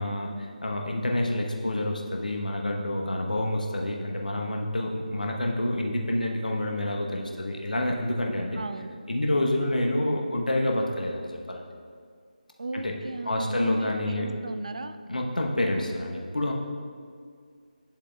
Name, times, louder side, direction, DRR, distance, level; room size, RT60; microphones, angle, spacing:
voice 1, 0.0-8.6 9.1-11.6 12.7-13.0 13.2-14.3 15.1-16.5, left 1 dB, 70° left, 1 dB, 1.0 m, -28 dB
voice 2, 8.6-9.0 12.6-15.0, right 2 dB, 50° right, 9 dB, 0.3 m, -36 dB
10.5 x 7.2 x 2.3 m, 2.1 s
figure-of-eight pair, 160°, 5 cm